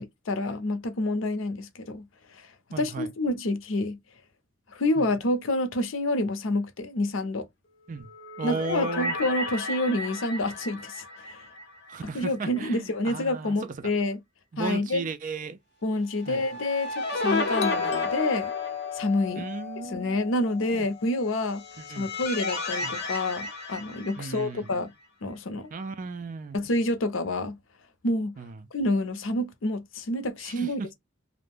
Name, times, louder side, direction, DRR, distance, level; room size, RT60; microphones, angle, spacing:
voice 1, 0.0-2.0 2.3-2.5 2.8-4.0 4.7-7.5 8.4-11.4 12.1-14.2 14.6-15.0 15.8-18.5 18.9-19.5 19.9-21.6 21.9-24.9 25.2-25.7 26.5-27.6 28.0-28.3 28.7-30.8, left 2 dB, 90° left, 0.6 m, -28 dB
voice 2, 2.7-3.1 5.0-5.1 7.9-8.1 8.4-9.1 11.9-13.9 14.5-15.6 16.3-16.4 19.3-20.0 20.8-20.9 21.8-22.1 22.8-22.9 24.2-24.7 25.7-26.6 28.4-28.6 30.4-30.9, right 3 dB, 45° right, 0.4 m, -35 dB
sound 1, 8.0-12.3 12.6-12.7 16.2-19.3 21.3-24.7, left 2 dB, 60° left, 0.8 m, -33 dB
Doorbell, 17.6-22.2, left 9 dB, 35° left, 0.3 m, -36 dB
2.5 x 2.1 x 3.4 m
head